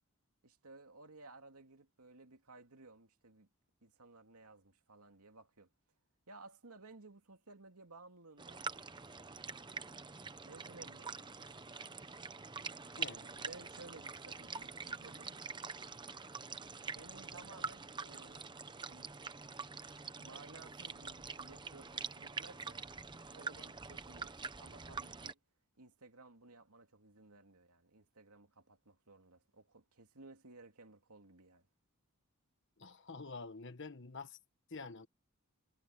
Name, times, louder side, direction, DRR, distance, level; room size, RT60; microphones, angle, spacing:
voice 1, 0.4-3.5 3.8-5.7 6.3-8.6 10.4-11.1 13.1-15.4 16.9-18.4 18.8-19.1 20.1-22.9 23.3-25.4 25.8-31.7, right 3 dB, 85° right, 2.7 m, -57 dB
sound 1, 8.4-25.3, right 4 dB, 20° right, 0.9 m, -45 dB
voice 2, 32.8-34.4 34.7-35.1, left 4 dB, 55° left, 1.2 m, -47 dB
head